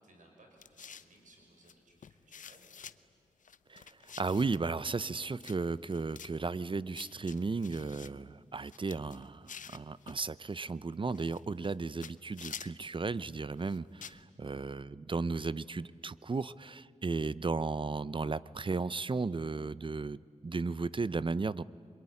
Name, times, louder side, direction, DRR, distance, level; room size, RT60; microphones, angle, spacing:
voice 1, 0.0-2.7, right 2 dB, 80° right, 2 dB, 6.4 m, -61 dB
sound 1, 0.6-1.2 1.7-1.8 2.0-3.0 3.4-4.6 5.2-5.6 5.8-6.3 6.9-8.1 8.6-10.2 11.1-11.8 12.0-12.9 13.6-14.2, left 7 dB, 85° left, 0.7 m, -49 dB
voice 2, 3.7-21.6, right 4 dB, 40° right, 18 dB, 0.6 m, -35 dB
26.0 x 22.5 x 9.9 m, 2.4 s
cardioid pair, 60°, 13 cm